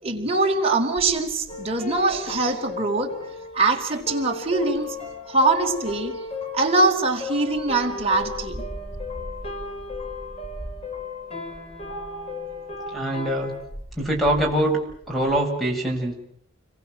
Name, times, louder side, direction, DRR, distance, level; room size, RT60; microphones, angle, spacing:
voice 1, 0.0-3.2 3.5-5.0 5.3-6.2 6.5-8.6, right 3 dB, 30° right, 4.5 m, -23 dB
sound 1, 1.0-6.9 7.5-15.4, equal, 55° left, 6.2 m, -42 dB
sound 2, 1.5-13.6, left 4 dB, 35° left, 7.0 m, -35 dB
voice 2, 12.9-13.5 13.9-16.1, right 1 dB, ahead, 6.7 m, -24 dB
30.0 x 23.5 x 7.7 m
head